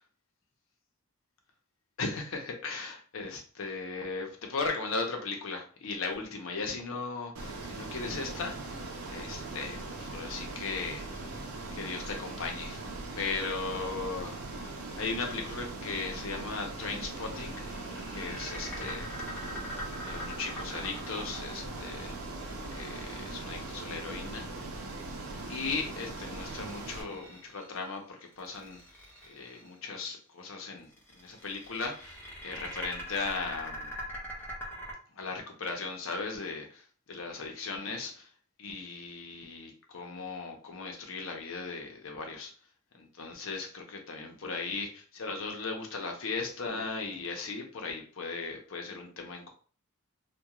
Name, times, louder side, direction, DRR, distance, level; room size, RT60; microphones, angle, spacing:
voice 1, 2.0-8.8 9.1-11.2 11.7-12.8 13.1-14.4 15.0-17.5 18.1-19.1 20.0-22.2 22.7-24.7 25.5-28.8 29.3-33.9 35.1-38.3 38.6-42.5 42.9-49.5, left 4 dB, 70° left, 2 dB, 0.6 m, -37 dB
Ocean, 7.4-27.0, right 2 dB, 85° right, 0.6 m, -40 dB
sound 1, 17.2-23.4 26.2-27.8 28.3-29.7 30.9-34.9, equal, 10° left, 0.7 m, -42 dB
2.3 x 2.2 x 2.8 m, 0.41 s
head